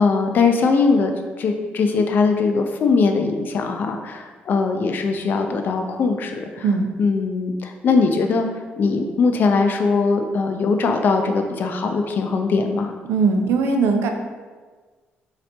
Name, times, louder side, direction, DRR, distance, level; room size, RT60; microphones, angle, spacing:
voice 1, 0.0-6.6 7.0-8.5 8.8-12.9, left 4 dB, 55° left, 5 dB, 0.4 m, -20 dB
voice 2, 6.6-6.9 13.0-14.1, right 4 dB, 85° right, 5 dB, 0.4 m, -19 dB
4.0 x 2.8 x 3.3 m, 1.4 s
cardioid pair, 120°, 4 cm